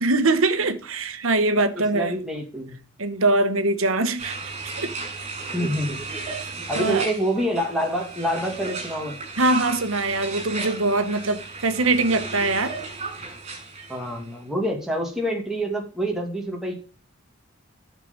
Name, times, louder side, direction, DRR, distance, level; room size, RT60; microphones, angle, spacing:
voice 1, 0.0-2.2 3.0-4.9 6.4-7.1 7.4-7.5 9.4-12.8, right 2 dB, 80° right, 1.1 m, -23 dB
voice 2, 1.7-2.8 5.5-6.0 6.7-9.2 13.9-16.7, equal, ahead, 2.3 m, -27 dB
sound 1, 4.2-14.2, right 3 dB, 30° right, 6.9 m, -34 dB
12.0 x 6.7 x 5.2 m
head